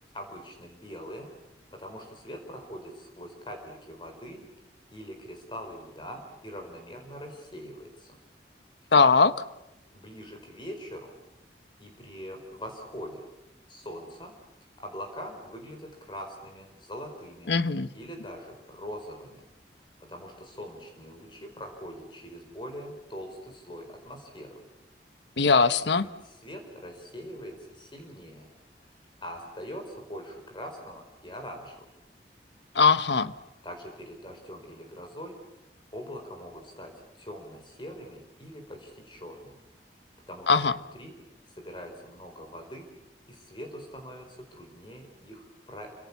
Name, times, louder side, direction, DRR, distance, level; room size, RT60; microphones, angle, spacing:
voice 1, 0.1-1.3 1.7-4.4 4.9-8.2 9.9-11.2 11.8-13.3 13.7-14.3 14.8-17.5 17.9-19.4 20.1-24.6 25.8-28.5 28.8-28.9 29.2-31.9 33.6-35.3 35.9-39.6 40.3-41.1 41.5-42.9 43.3-45.9, equal, 25° left, 3 dB, 4.8 m, -42 dB
voice 2, 8.9-9.3 17.5-17.9 25.4-26.1 32.7-33.3 40.5-40.7, left 4 dB, 75° left, 13 dB, 1.1 m, -20 dB
29.0 x 26.5 x 7.3 m, 0.92 s
head